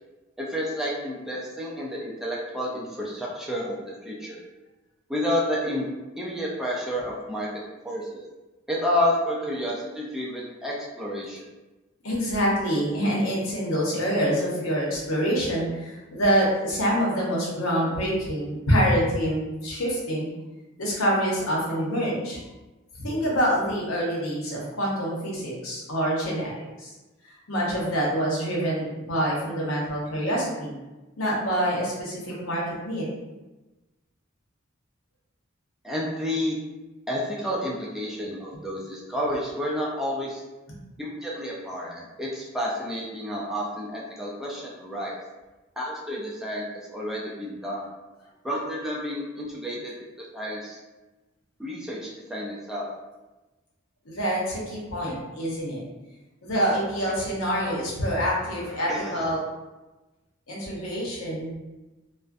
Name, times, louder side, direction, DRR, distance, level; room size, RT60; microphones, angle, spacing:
voice 1, 0.4-4.4 5.1-5.9 6.2-7.5 7.8-8.2 8.7-11.4 35.8-36.6 37.1-40.4 41.0-45.2 45.8-46.6 46.9-47.8 48.4-49.9 50.3-50.8 51.6-52.9 58.9-59.2, left 1 dB, ahead, -5 dB, 0.3 m, -30 dB
voice 2, 12.0-20.3 20.8-22.4 23.0-26.5 26.8-26.9 27.5-30.7 31.2-33.1 54.0-55.8 56.4-59.4 60.5-61.5, equal, 90° left, -5 dB, 0.8 m, -26 dB
2.4 x 2.1 x 2.5 m, 1.1 s
head